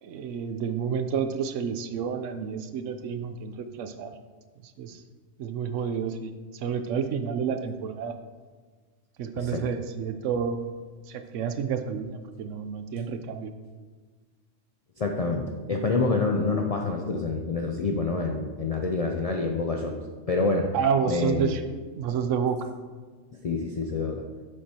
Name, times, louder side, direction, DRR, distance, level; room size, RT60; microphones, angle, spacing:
voice 1, 0.0-4.1 4.8-5.0 5.4-8.1 9.2-10.8 11.1-13.5 20.7-22.7, right 6 dB, 80° right, 9 dB, 0.9 m, -30 dB
voice 2, 15.0-20.0 20.3-20.7 21.1-21.6 23.4-24.3, left 3 dB, 60° left, 2 dB, 0.4 m, -27 dB
7.8 x 6.6 x 2.8 m, 1.4 s
omnidirectional pair, 1.3 m